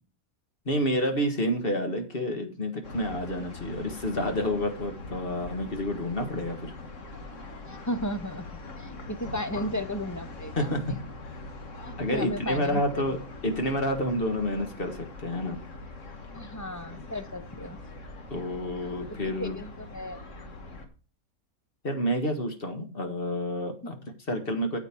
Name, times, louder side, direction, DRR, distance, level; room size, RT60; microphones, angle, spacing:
voice 1, 0.7-6.7 10.6-11.0 12.0-13.2 13.4-15.6 18.3-19.6 21.8-24.8, equal, 40° left, 5 dB, 1.9 m, -29 dB
sound 1, 2.8-20.9, left 3 dB, 55° left, 1.9 m, -42 dB
voice 2, 7.7-10.7 11.8-12.8 16.3-17.8 19.2-20.2 23.8-23.9, equal, 20° left, 9 dB, 0.5 m, -35 dB
8.6 x 8.2 x 4.5 m, 0.36 s
omnidirectional pair, 1.6 m